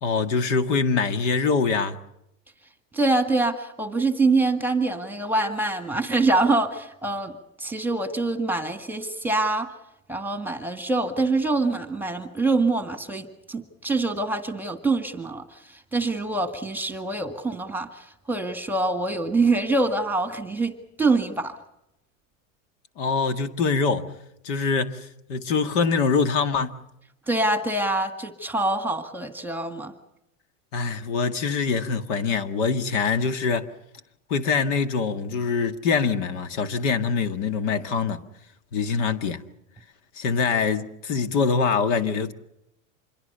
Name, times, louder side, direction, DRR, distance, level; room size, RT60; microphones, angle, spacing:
voice 1, 0.0-2.0 23.0-24.1 24.4-26.8 30.7-33.7 34.3-38.2 38.7-39.4 40.2-42.3, left 5 dB, 65° left, 2.0 m, -24 dB
voice 2, 2.9-7.3 7.6-9.7 10.1-21.6 27.3-29.9, right 3 dB, 5° right, 1.9 m, -25 dB
26.5 x 22.0 x 6.8 m
supercardioid pair, 140°, 40 cm